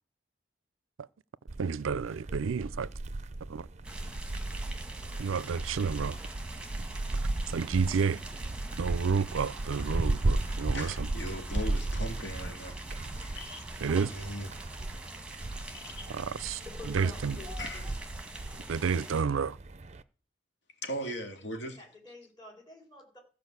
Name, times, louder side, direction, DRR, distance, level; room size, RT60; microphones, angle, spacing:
sound 1, 1.5-20.0, right 2 dB, 35° right, 0.5 m, -36 dB
voice 1, 1.6-2.9 3.5-3.7 5.2-6.2 7.5-8.2 8.8-11.1 13.8-14.1 16.1-16.6 16.9-17.4 18.7-19.6, right 5 dB, 90° right, 0.5 m, -30 dB
sound 2, 3.8-19.2, right 2 dB, 5° right, 1.6 m, -44 dB
voice 2, 10.7-13.6 14.1-14.5 14.9-15.0 15.7-16.1 17.6-17.8 20.8-21.8, equal, 60° left, 2.4 m, -39 dB
voice 3, 16.6-17.9 21.6-23.2, left 2 dB, 20° left, 3.8 m, -49 dB
14.5 x 5.1 x 8.0 m
head